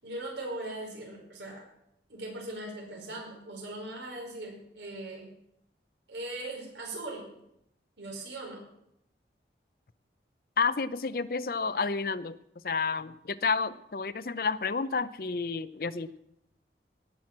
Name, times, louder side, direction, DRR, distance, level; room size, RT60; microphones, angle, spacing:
voice 1, 0.0-1.7 2.1-5.3 6.1-7.4 8.0-8.6, right 2 dB, 85° right, 0 dB, 5.1 m, -39 dB
voice 2, 10.6-12.4 12.6-16.1, left 4 dB, 55° left, 16 dB, 0.5 m, -30 dB
18.0 x 6.3 x 7.4 m, 0.78 s
head